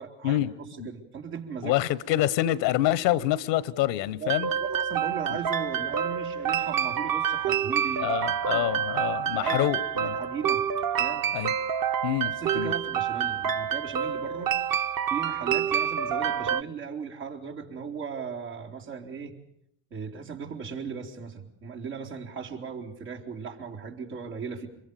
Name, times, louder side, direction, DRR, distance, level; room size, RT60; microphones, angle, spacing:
voice 1, 0.0-1.8 4.2-8.8 9.4-9.7 10.0-10.6 11.0-11.3 12.2-14.5 15.1-19.3 19.9-24.7, right 6 dB, 85° right, 0 dB, 3.9 m, -37 dB
voice 2, 1.6-4.5 5.3-5.4 8.0-10.1 11.3-11.5 12.0-12.7, left 14 dB, 85° left, 20 dB, 1.1 m, -26 dB
sound 1, 4.3-16.6, right 8 dB, 45° right, 0.9 m, -28 dB
25.5 x 22.5 x 7.0 m, 0.75 s
hypercardioid pair, 60°, 49 cm